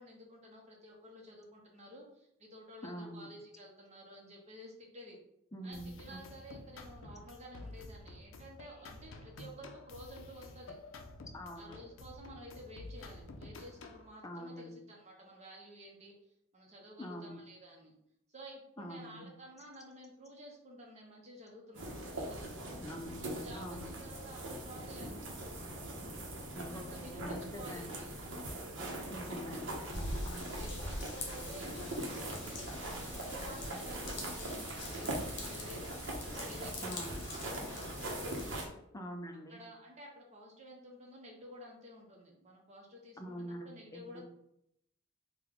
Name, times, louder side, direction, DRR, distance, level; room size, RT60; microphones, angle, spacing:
voice 1, 0.0-5.2 5.6-10.8 11.5-16.2 16.5-17.9 18.3-22.8 23.2-25.5 26.9-28.4 28.8-29.2 30.6-35.8 36.3-37.9 38.3-38.6 39.5-44.2, equal, 35° right, 0 dB, 0.8 m, -52 dB
voice 2, 2.8-3.3 5.5-6.2 11.3-11.8 14.2-14.8 17.0-17.4 18.8-19.3 22.8-24.0 26.5-28.0 29.1-30.4 36.8-37.2 38.9-39.6 43.2-44.2, equal, 15° left, 3 dB, 0.4 m, -45 dB
sound 1, 5.7-14.1, left 2 dB, 85° left, 0.4 m, -50 dB
sound 2, 21.7-38.6, right 1 dB, 70° right, 0.8 m, -41 dB
Raindrop / Vehicle horn car horn honking / Trickle dribble, 29.9-38.7, left 2 dB, 60° left, 0.8 m, -44 dB
3.5 x 2.2 x 3.4 m, 0.77 s
head